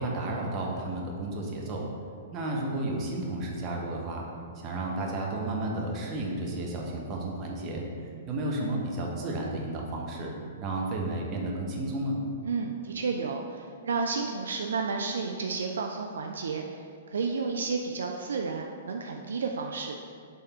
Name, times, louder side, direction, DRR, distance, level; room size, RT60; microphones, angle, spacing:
voice 1, 0.0-1.8 2.3-4.2 4.5-7.8 8.3-10.3 10.6-12.2, right 2 dB, 30° right, -2 dB, 1.1 m, -32 dB
voice 2, 12.4-20.0, right 4 dB, 70° right, 3 dB, 0.4 m, -32 dB
6.8 x 3.5 x 4.4 m, 2.3 s
figure-of-eight pair, 110°, 0 cm